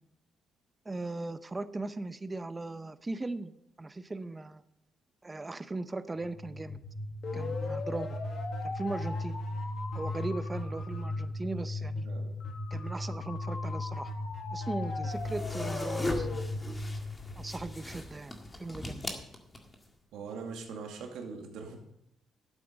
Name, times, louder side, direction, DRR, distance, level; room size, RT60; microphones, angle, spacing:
voice 1, 0.8-4.6 5.2-6.8 7.3-8.2 8.6-9.4 9.9-12.1 12.7-14.1 14.5-16.3 17.4-18.3 18.6-19.0, right 2 dB, 20° right, 13 dB, 0.7 m, -38 dB
sound 1, 6.2-18.0, left 2 dB, 55° left, 2.0 m, -36 dB
sound 2, 15.1-19.9, left 1 dB, 20° left, 1.9 m, -39 dB
voice 2, 20.1-21.8, right 5 dB, 85° right, 2 dB, 2.4 m, -41 dB
12.0 x 8.5 x 5.3 m, 0.81 s
cardioid pair, 90°, 0 cm